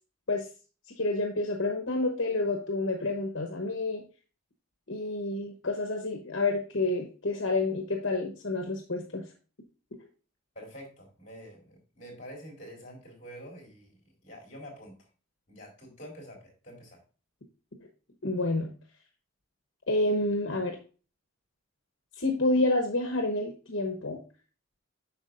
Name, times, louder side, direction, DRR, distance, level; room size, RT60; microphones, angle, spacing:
voice 1, 1.0-4.0 4.9-9.2 18.2-18.7 19.9-20.8 22.2-24.2, left 2 dB, 70° left, 3 dB, 1.0 m, -29 dB
voice 2, 10.6-14.0 14.2-15.0 15.5-17.0, equal, 40° left, -1 dB, 3.7 m, -47 dB
8.1 x 6.0 x 2.5 m, 0.36 s
head